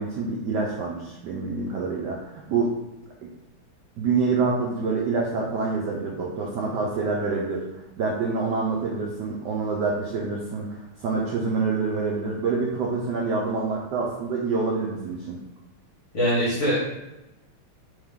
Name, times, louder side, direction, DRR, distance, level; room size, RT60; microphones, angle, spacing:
voice 1, 0.0-2.7 3.2-3.3 4.0-15.4, right 4 dB, 80° right, -2 dB, 0.9 m, -27 dB
voice 2, 16.1-16.8, equal, 50° left, -6 dB, 1.0 m, -22 dB
3.5 x 3.1 x 3.5 m, 0.98 s
omnidirectional pair, 2.4 m